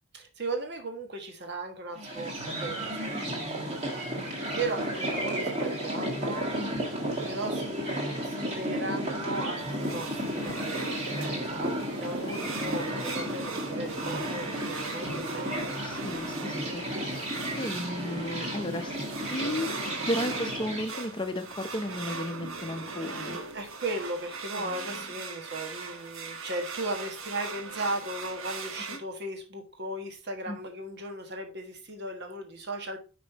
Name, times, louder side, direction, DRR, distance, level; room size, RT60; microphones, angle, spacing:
voice 1, 0.1-3.5 4.4-15.8 23.5-33.0, right 2 dB, 50° right, 1.3 m, -37 dB
sound 1, 2.0-20.9, equal, 30° right, 1.7 m, -33 dB
voice 2, 3.1-3.5 4.1-4.3 6.6-6.9 12.2-12.6 14.2-14.6 15.8-17.0 17.6-18.9 19.3-19.7 20.1-23.4 24.5-24.9 30.5-30.6, left 1 dB, 25° left, 0.7 m, -35 dB
sound 2, 9.6-29.0, right 4 dB, 70° right, 1.0 m, -40 dB
5.4 x 5.2 x 4.0 m
head